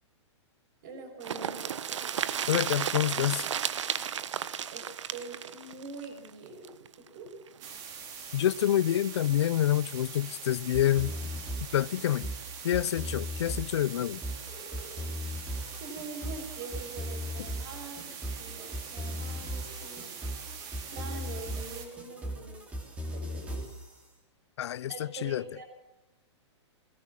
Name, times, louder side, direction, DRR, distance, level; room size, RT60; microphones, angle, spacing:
voice 1, 0.8-1.6 4.7-4.8 5.1-7.3 15.8-20.1 20.9-22.6 23.1-23.7 24.9-25.6, right 3 dB, 40° right, 6.5 m, -44 dB
sound 1, 1.2-6.9 7.3-7.4 7.6-7.7, right 8 dB, 90° right, 1.3 m, -33 dB
voice 2, 2.5-3.4 8.3-11.1 11.7-12.3 12.6-14.2 24.6-25.4, left 11 dB, 65° left, 0.6 m, -27 dB
sound 2, 7.6-21.9, right 6 dB, 25° right, 3.2 m, -43 dB
sound 3, 10.7-24.0, equal, 10° right, 2.7 m, -38 dB
21.5 x 18.5 x 7.4 m
hypercardioid pair, 170°, 15 cm